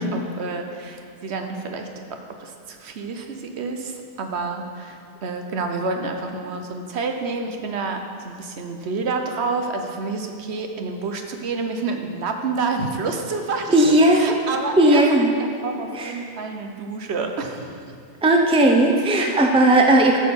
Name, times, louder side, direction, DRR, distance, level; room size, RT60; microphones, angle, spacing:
voice 1, 0.1-1.9 2.4-15.0 15.4-17.8 19.1-19.4, right 4 dB, 70° right, 4 dB, 1.0 m, -29 dB
voice 2, 13.7-14.4 14.8-15.3 15.9-16.1 18.2-20.2, right 1 dB, 5° right, 1 dB, 0.6 m, -16 dB
11.0 x 4.4 x 6.9 m, 2.3 s
omnidirectional pair, 1.2 m